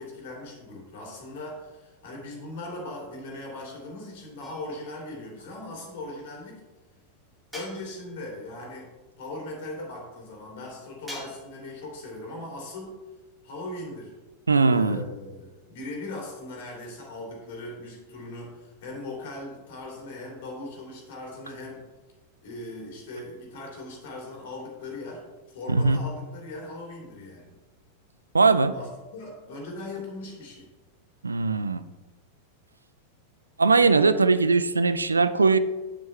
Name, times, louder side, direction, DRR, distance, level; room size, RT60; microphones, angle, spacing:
voice 1, 0.0-6.6 7.5-8.9 9.2-12.9 13.4-14.1 14.7-21.8 22.4-27.5 28.7-30.7, left 2 dB, 50° left, -1 dB, 2.9 m, -39 dB
sound 1, 4.4-5.1 7.5-8.3 11.1-11.7, left 1 dB, ahead, 2.7 m, -43 dB
voice 2, 14.5-15.0 25.7-26.0 28.3-28.7 31.2-31.8 33.6-35.6, right 4 dB, 75° right, 13 dB, 0.4 m, -20 dB
8.4 x 7.7 x 3.3 m, 1.2 s
figure-of-eight pair, 90°, 0 cm